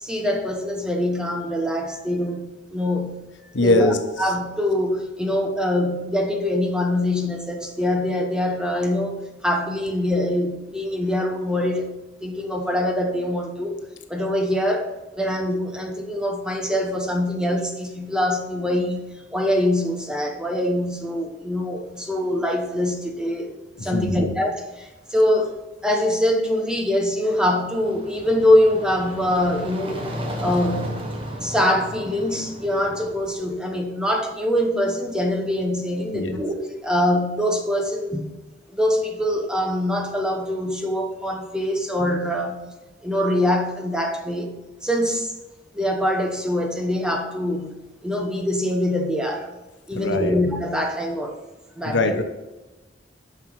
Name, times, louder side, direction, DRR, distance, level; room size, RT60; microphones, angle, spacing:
voice 1, 0.0-2.4 2.7-3.2 3.5-11.9 12.2-13.8 14.1-23.5 23.7-25.6 25.8-30.1 30.4-30.9 31.4-38.3 38.7-42.6 43.0-44.6 44.8-45.3 45.7-47.7 48.0-49.5 49.9-51.4 51.8-52.2, left 1 dB, 5° right, 2 dB, 1.0 m, -24 dB
voice 2, 3.5-4.3 23.8-24.3 36.1-36.3 49.9-50.3 51.8-52.2, left 2 dB, 85° left, 6 dB, 1.0 m, -22 dB
sound 1, 27.5-33.5, equal, 30° right, 1.2 m, -34 dB
9.5 x 5.9 x 4.8 m, 1.1 s
head